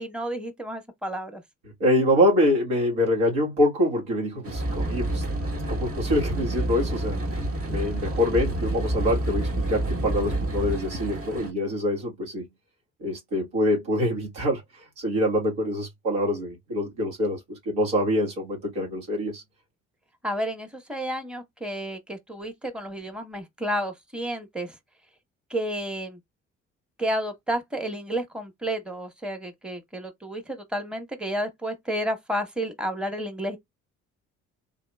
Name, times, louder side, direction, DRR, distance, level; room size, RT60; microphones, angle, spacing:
voice 1, 0.0-1.4 20.2-24.8 25.5-26.2 27.0-33.6, equal, 5° right, 1.2 m, -31 dB
voice 2, 1.8-5.2 5.7-7.2 7.7-12.5 13.0-14.6 15.0-19.4, left 1 dB, 80° right, 2.0 m, -25 dB
sound 1, 4.4-11.5, right 1 dB, 40° right, 1.4 m, -28 dB
3.9 x 2.9 x 2.3 m
hypercardioid pair, 50°, 34 cm